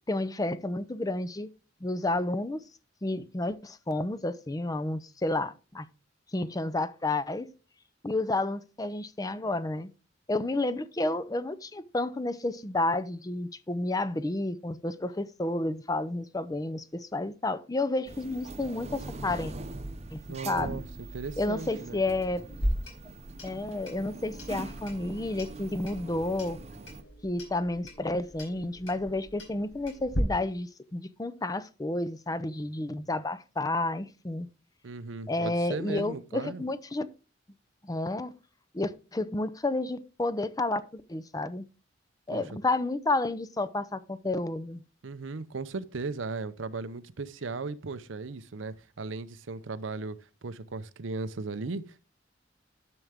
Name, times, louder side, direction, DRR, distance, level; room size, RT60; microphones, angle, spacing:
voice 1, 0.1-1.5 1.8-2.6 3.0-5.9 6.3-7.5 8.0-9.9 10.3-19.5 20.1-20.8 21.4-22.4 23.0-23.1 23.4-26.6 27.2-34.5 35.3-37.1 37.8-38.4 38.7-41.6 42.3-44.8, left 2 dB, 20° left, 0.5 m, -31 dB
sound 1, 18.1-27.0, right 2 dB, 35° right, 0.7 m, -42 dB
voice 2, 20.3-20.9 21.1-22.0 34.8-36.6 42.3-42.4 45.0-52.0, right 3 dB, 75° right, 0.7 m, -37 dB
Clock, 22.5-30.2, equal, 85° left, 4.7 m, -38 dB
11.0 x 7.0 x 3.5 m
head